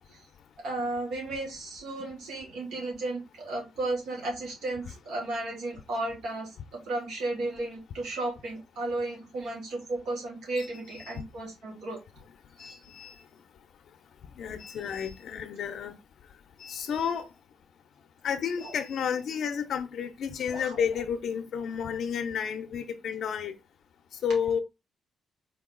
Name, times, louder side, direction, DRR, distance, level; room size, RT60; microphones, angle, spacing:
voice 1, 0.6-12.0 12.6-12.7 18.6-18.7 20.5-20.8, right 2 dB, 80° right, 2.4 m, -34 dB
voice 2, 10.6-11.2 12.6-13.2 14.4-15.9 16.6-17.3 18.2-23.5 24.2-24.6, left 7 dB, 55° left, 0.5 m, -31 dB
4.6 x 2.9 x 3.7 m
cardioid pair, 175°, 0 cm